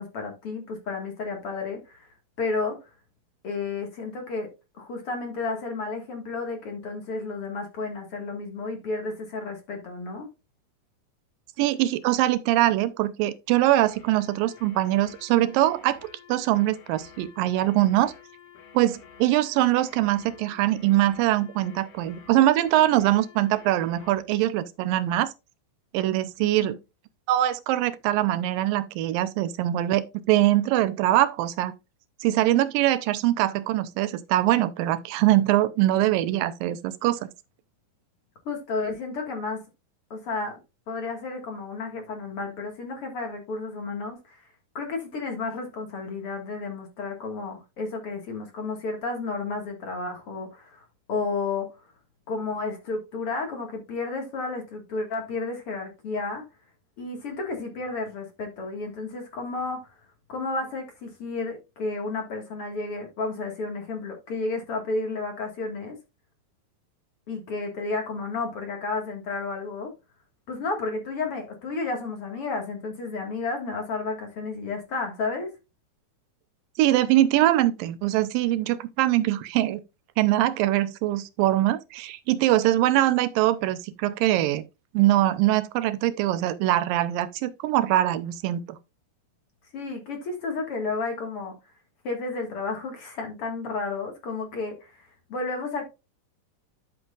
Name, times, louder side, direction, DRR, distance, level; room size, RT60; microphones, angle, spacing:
voice 1, 0.0-2.1 2.4-2.8 3.4-4.5 4.8-10.3 26.6-26.8 38.5-39.6 40.1-40.6 40.9-44.4 44.7-51.7 52.3-56.4 57.0-59.9 60.3-66.0 67.3-69.9 70.5-75.5 89.7-91.5 92.0-95.9, left 3 dB, 45° left, 2.4 m, -32 dB
voice 2, 11.6-16.0 16.3-18.1 18.7-25.3 25.9-26.8 27.3-31.7 32.2-37.3 76.8-79.8 80.2-84.6 84.9-88.8, right 14 dB, 85° right, 2.4 m, -23 dB
sound 1, 13.5-24.3, left 7 dB, 65° left, 3.0 m, -51 dB
12.0 x 6.1 x 2.4 m
omnidirectional pair, 4.0 m